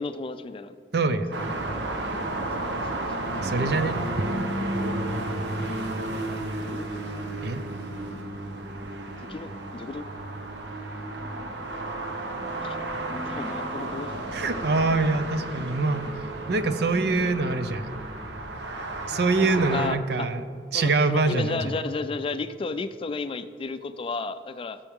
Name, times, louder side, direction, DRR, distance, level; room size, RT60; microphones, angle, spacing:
voice 1, 0.0-1.2 2.6-2.9 6.6-6.9 9.2-10.1 12.6-12.8 13.1-14.2 19.6-20.3 20.7-24.8, left 3 dB, 30° left, 12 dB, 0.4 m, -33 dB
voice 2, 0.9-1.4 3.4-4.0 7.4-7.6 14.3-17.9 19.1-20.4 20.7-21.7, right 3 dB, 65° right, 10 dB, 0.7 m, -24 dB
sound 1, 1.3-19.9, right 1 dB, 85° right, 1.0 m, -32 dB
sound 2, 11.2-18.9, right 1 dB, 30° right, 1.1 m, -42 dB
16.5 x 7.0 x 3.6 m, 2.4 s
head